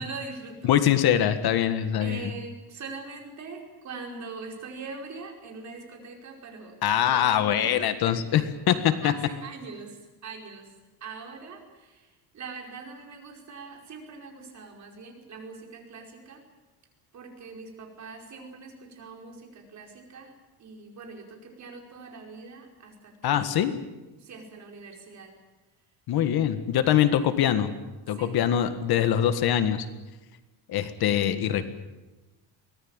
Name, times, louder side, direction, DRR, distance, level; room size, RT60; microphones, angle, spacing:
voice 1, 0.0-0.7 2.0-6.7 7.1-7.7 8.0-8.2 9.0-10.7 11.0-16.4 17.1-20.3 20.6-23.5 24.2-25.3 28.1-28.4, right 4 dB, 40° right, 2 dB, 5.1 m, -42 dB
voice 2, 0.6-2.2 6.8-9.1 23.2-23.7 26.1-27.7 28.1-29.8 30.7-31.7, left 10 dB, 60° left, 10 dB, 1.8 m, -23 dB
23.5 x 19.0 x 8.9 m, 1.1 s
cardioid pair, 165°, 42 cm